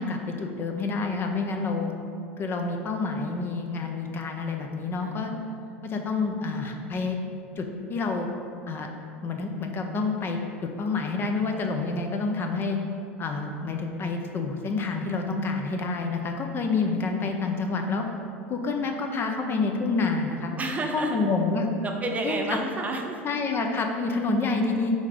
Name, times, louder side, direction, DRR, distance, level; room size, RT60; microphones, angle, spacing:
voice 1, 0.0-1.9 2.4-5.3 5.8-7.2 7.6-8.3 8.7-8.9 9.2-12.8 13.2-18.1 18.5-20.5 20.9-21.7 22.2-22.4 23.2-24.9, left 3 dB, 30° left, 4 dB, 0.6 m, -28 dB
voice 2, 20.6-21.2 21.8-23.2, right 2 dB, 20° right, 2 dB, 0.7 m, -30 dB
5.2 x 3.8 x 5.0 m, 2.5 s
hypercardioid pair, 85°, 7 cm